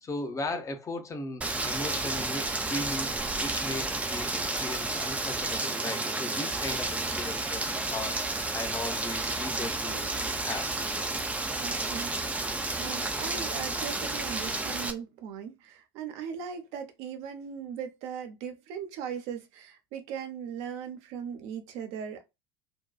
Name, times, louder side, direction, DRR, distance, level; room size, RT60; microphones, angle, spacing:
voice 1, 0.0-3.1 3.4-10.8, left 2 dB, 25° left, 0.7 m, -37 dB
Rain, 1.4-14.9, right 2 dB, 10° right, 0.5 m, -31 dB
voice 2, 11.6-22.2, right 7 dB, 55° right, 0.6 m, -39 dB
2.7 x 2.2 x 2.2 m
figure-of-eight pair, 70°, 13 cm